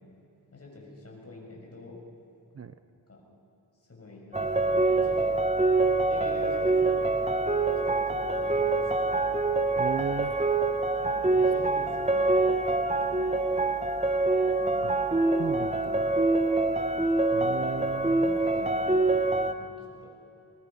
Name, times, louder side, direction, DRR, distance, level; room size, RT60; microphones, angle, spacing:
voice 1, 0.5-2.0 3.1-3.2 3.9-5.4 5.8-7.3 7.8-9.2 10.9-12.5 12.8-13.4 14.5-15.7 17.1-17.8 18.2-19.1 19.5-19.7 20.0-20.1, left 2 dB, 35° left, -1 dB, 6.7 m, -46 dB
sound 1, 4.3-19.5, right 2 dB, 15° right, 1.1 m, -25 dB
voice 2, 9.7-10.4 14.8-14.9 15.4-16.0 17.3-18.3, right 6 dB, 35° right, 11 dB, 0.6 m, -35 dB
22.5 x 20.0 x 5.7 m, 2.9 s
wide cardioid pair, 85°, 41 cm